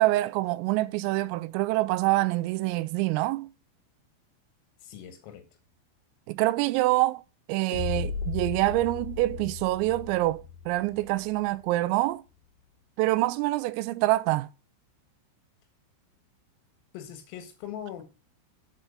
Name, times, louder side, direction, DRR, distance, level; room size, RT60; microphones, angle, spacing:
voice 1, 0.0-3.5 6.3-7.2 7.5-12.2 13.0-14.5, right 18 dB, 85° right, 3.2 m, -26 dB
voice 2, 4.8-5.5 16.9-18.0, left 10 dB, 90° left, 4.2 m, -41 dB
sound 1, 7.7-11.7, left 6 dB, 55° left, 3.8 m, -36 dB
8.2 x 4.6 x 6.7 m
omnidirectional pair, 5.9 m